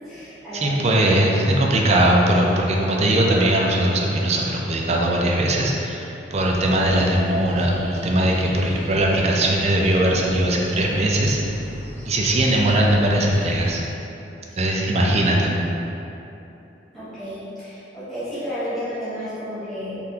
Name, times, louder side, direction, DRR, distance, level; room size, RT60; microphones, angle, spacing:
voice 1, 0.0-0.8 14.5-14.6 16.9-20.0, equal, ahead, -16 dB, 1.1 m, -32 dB
voice 2, 0.5-11.4 12.1-13.8 14.6-15.5, right 1 dB, 35° right, -2 dB, 0.5 m, -20 dB
sound 1, 6.3-13.8, equal, 35° left, 0.9 m, -38 dB
3.9 x 3.3 x 2.8 m, 2.9 s
head